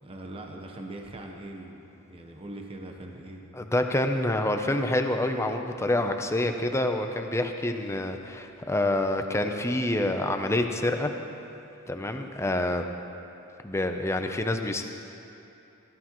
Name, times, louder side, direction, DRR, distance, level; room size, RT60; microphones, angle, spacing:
voice 1, 0.0-3.4, right 1 dB, 25° right, 2 dB, 1.0 m, -41 dB
voice 2, 3.5-11.1 11.9-12.9 13.6-14.8, left 1 dB, 15° left, 5 dB, 0.6 m, -27 dB
17.0 x 13.0 x 3.1 m, 2.8 s
head